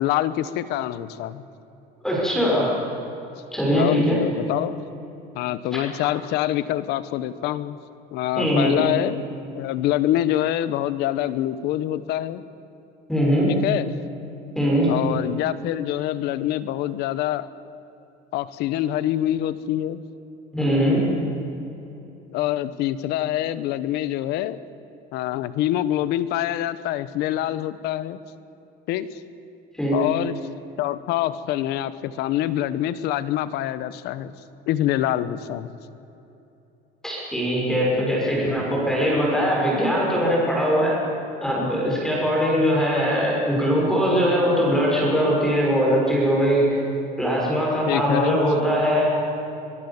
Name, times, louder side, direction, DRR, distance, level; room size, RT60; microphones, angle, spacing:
voice 1, 0.0-1.4 3.7-4.8 5.3-7.8 8.1-9.2 9.5-12.4 13.5-13.9 14.9-17.5 18.3-20.0 22.3-24.6 25.1-28.2 28.9-29.2 29.9-30.4 30.8-34.3 34.7-35.7 47.9-48.4, left 13 dB, 65° left, 14 dB, 1.1 m, -25 dB
voice 2, 2.0-2.7 3.5-4.2 8.4-8.7 13.1-13.5 14.5-15.0 20.5-21.1 29.8-30.0 37.0-41.0 41.4-46.7 47.2-49.1, equal, 5° left, -4 dB, 6.1 m, -21 dB
24.0 x 21.5 x 7.3 m, 2.9 s
cardioid pair, 175°, 19 cm